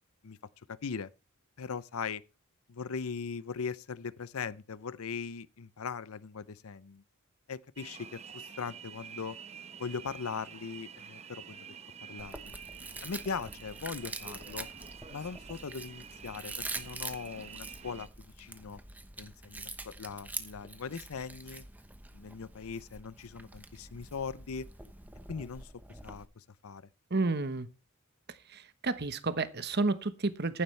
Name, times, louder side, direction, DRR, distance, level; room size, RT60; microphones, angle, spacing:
voice 1, 0.7-1.1 1.6-2.2 2.7-7.0 7.5-9.4 9.8-11.7 12.1-12.6 13.0-14.7 15.1-18.8 19.2-21.6 22.1-24.7 25.3-26.9, left 5 dB, 70° left, 0.6 m, -40 dB
sound 1, 7.8-18.1, right 7 dB, 30° right, 0.8 m, -48 dB
Chewing mastication, 12.2-26.3, right 2 dB, 10° right, 1.0 m, -45 dB
voice 2, 27.1-27.7 28.5-30.6, right 3 dB, 45° right, 1.1 m, -31 dB
15.0 x 11.0 x 3.3 m
head